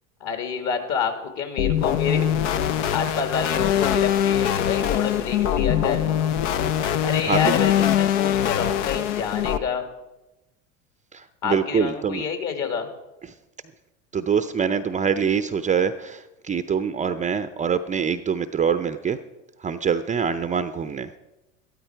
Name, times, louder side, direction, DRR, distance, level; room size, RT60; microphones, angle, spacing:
voice 1, 0.2-2.3 2.9-6.0 7.0-9.9 11.4-12.9, left 6 dB, 45° left, 6 dB, 2.2 m, -28 dB
sound 1, 1.6-9.6, left 10 dB, 70° left, 0.8 m, -22 dB
voice 2, 11.1-12.2 14.1-19.2 19.6-21.1, right 7 dB, 20° right, 12 dB, 0.5 m, -24 dB
13.0 x 13.0 x 4.6 m, 1.0 s
hypercardioid pair, 80°, 37 cm